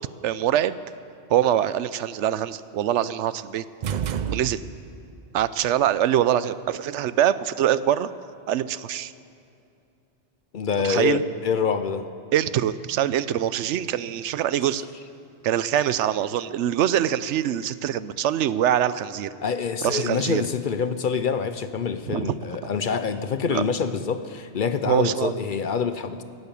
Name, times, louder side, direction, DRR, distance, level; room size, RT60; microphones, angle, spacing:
voice 1, 0.2-0.7 1.3-3.6 4.3-4.6 5.3-8.1 8.5-9.1 10.8-11.2 12.3-14.8 15.4-19.3 19.8-20.4 22.1-22.3 23.5-23.6 24.9-25.3, right 11 dB, 85° right, 0.9 m, -23 dB
sound 1, 3.8-5.1, right 7 dB, 55° right, 0.5 m, -29 dB
voice 2, 10.5-12.1 19.4-26.2, left 6 dB, 55° left, 0.7 m, -26 dB
17.5 x 11.0 x 7.1 m
omnidirectional pair, 1.2 m